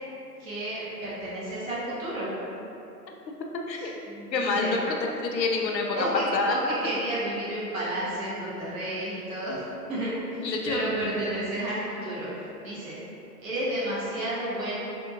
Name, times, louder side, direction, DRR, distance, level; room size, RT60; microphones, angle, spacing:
voice 1, 0.4-2.3 3.7-4.8 6.0-10.4 10.6-13.0 13.4-14.8, right 1 dB, 55° right, -9 dB, 1.4 m, -32 dB
voice 2, 4.3-6.6 10.4-10.9, left 3 dB, 90° left, 1 dB, 0.6 m, -27 dB
3.5 x 2.6 x 2.5 m, 2.9 s
figure-of-eight pair, 125°, 49 cm